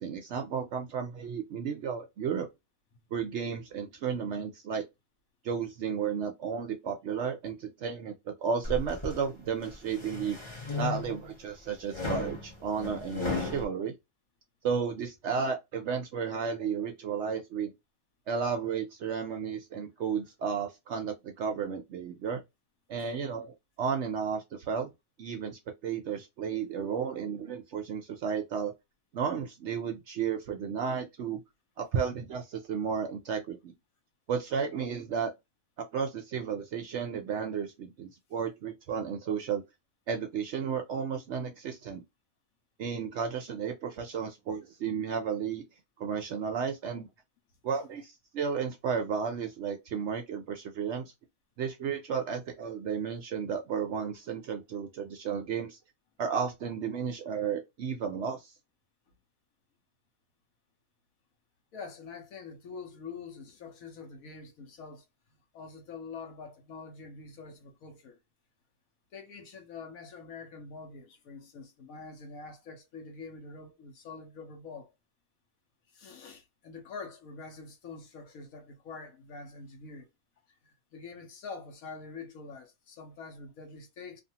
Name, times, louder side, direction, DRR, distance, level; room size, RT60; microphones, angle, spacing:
voice 1, 0.0-2.5 3.1-4.8 5.4-10.4 10.7-13.9 14.6-17.7 18.3-22.4 22.9-24.9 25.2-28.7 29.1-31.4 31.8-33.7 34.3-35.3 35.8-39.6 40.1-42.0 42.8-45.6 46.0-47.1 47.6-51.1 51.6-55.8 56.2-58.5, right 6 dB, 65° right, 0.7 m, -33 dB
sound 1, 8.6-9.2 9.7-11.3 11.9-13.6, left 3 dB, 25° left, 0.7 m, -35 dB
voice 2, 61.7-65.0 65.5-68.2 69.1-74.9 75.9-80.1 80.6-84.2, left 4 dB, 70° left, 1.2 m, -45 dB
2.6 x 2.5 x 2.7 m
omnidirectional pair, 1.6 m